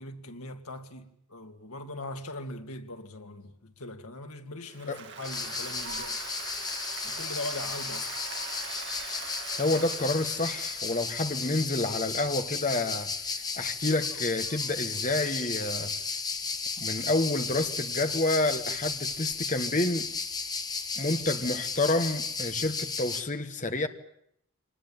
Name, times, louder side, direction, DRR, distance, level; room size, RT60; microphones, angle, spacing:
voice 1, 0.0-6.2 7.0-8.1, left 2 dB, 80° left, 2.5 m, -40 dB
Applause, 4.6-11.8, right 6 dB, 50° right, 3.0 m, -43 dB
sound 1, 5.2-23.2, left 4 dB, 15° left, 1.5 m, -34 dB
voice 2, 9.6-15.9 16.8-20.1 21.0-23.9, left 2 dB, 35° left, 1.5 m, -29 dB
25.0 x 20.0 x 8.9 m
head